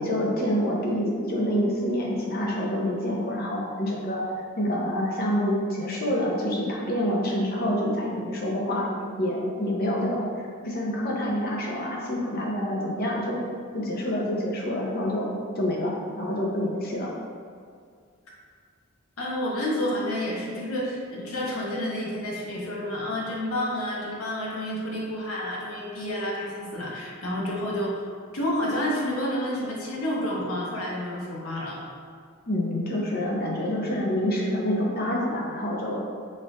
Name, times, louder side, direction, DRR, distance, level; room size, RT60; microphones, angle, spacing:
voice 1, 0.0-10.3 10.6-13.4 13.7-17.1 32.5-36.0, equal, 45° left, -3 dB, 0.6 m, -27 dB
voice 2, 19.2-28.0 28.3-31.8, left 1 dB, 85° left, -4 dB, 0.8 m, -29 dB
4.2 x 2.5 x 3.5 m, 2.1 s
head